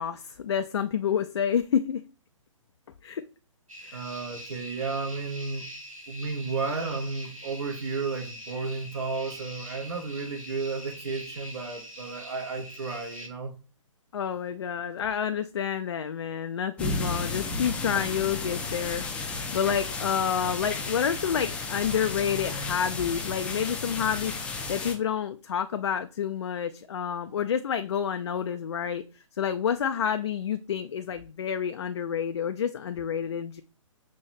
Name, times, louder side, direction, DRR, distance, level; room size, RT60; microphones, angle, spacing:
voice 1, 0.0-2.0 3.0-3.2 3.8-4.0 14.1-29.0 29.4-33.6, left 8 dB, 55° left, 0.4 m, -29 dB
sound 1, 3.7-13.3, equal, 85° right, 2.0 m, -43 dB
voice 2, 3.9-5.7 6.1-13.5 17.9-18.0, right 4 dB, 50° right, 1.3 m, -33 dB
sound 2, 16.8-24.9, left 3 dB, 5° left, 0.5 m, -33 dB
6.4 x 3.0 x 2.5 m
figure-of-eight pair, 130°, 17 cm